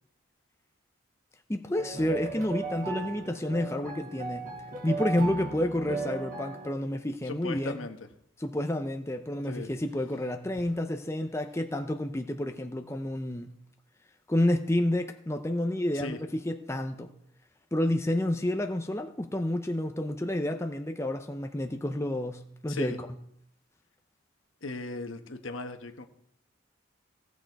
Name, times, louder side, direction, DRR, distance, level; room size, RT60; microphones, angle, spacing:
voice 1, 1.5-4.5 4.8-7.8 8.4-13.6 14.3-17.1 17.7-23.0, left 1 dB, 15° left, 5 dB, 0.5 m, -30 dB
sound 1, 1.7-6.7, right 3 dB, 40° right, 2.1 m, -36 dB
voice 2, 7.3-8.0 9.4-9.7 10.6-10.7 15.9-16.2 22.7-23.0 24.6-26.1, left 3 dB, 75° left, 6 dB, 1.2 m, -37 dB
17.0 x 6.4 x 4.6 m, 0.71 s
head